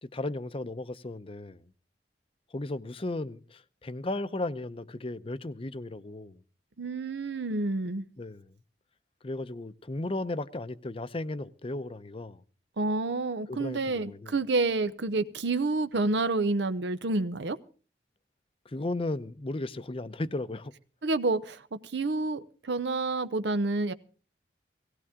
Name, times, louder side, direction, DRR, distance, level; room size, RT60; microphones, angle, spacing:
voice 1, 0.0-1.6 2.5-6.4 8.2-8.5 9.2-12.4 13.5-14.3 18.7-20.7, left 2 dB, 30° left, 0.7 m, -35 dB
voice 2, 6.8-8.0 12.8-17.6 21.0-23.9, right 3 dB, 75° right, 0.7 m, -29 dB
17.5 x 17.0 x 3.6 m
head